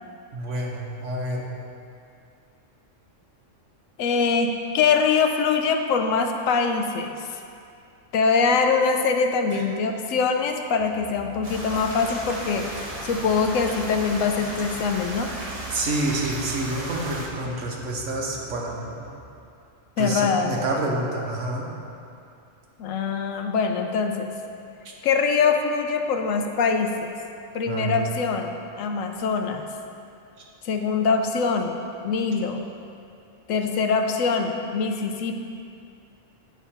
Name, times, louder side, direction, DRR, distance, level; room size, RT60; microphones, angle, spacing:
voice 1, 0.3-1.4 9.5-9.6 15.7-18.8 20.0-21.7 24.8-24.9 27.7-28.0, right 2 dB, 70° right, -2 dB, 1.3 m, -28 dB
voice 2, 4.0-7.2 8.1-15.3 20.0-20.5 22.8-24.3 25.0-27.1 27.5-29.6 30.6-31.8 32.0-32.6 33.5-35.4, left 5 dB, 80° left, 4 dB, 1.0 m, -23 dB
sound 1, 10.8-19.2, right 3 dB, 85° right, 1.0 m, -44 dB
sound 2, 11.4-17.3, right 1 dB, 30° right, 0.9 m, -35 dB
8.1 x 3.7 x 5.6 m, 2.5 s
omnidirectional pair, 1.3 m